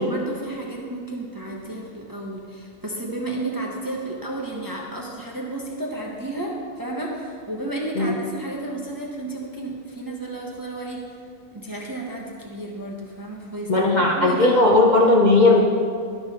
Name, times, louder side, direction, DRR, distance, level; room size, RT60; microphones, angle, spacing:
voice 1, 0.0-11.1 11.5-14.6, right 2 dB, 20° right, -2 dB, 0.8 m, -32 dB
voice 2, 13.7-15.6, left 2 dB, 40° left, -2 dB, 0.8 m, -16 dB
12.0 x 6.3 x 4.2 m, 2.2 s
omnidirectional pair, 1.4 m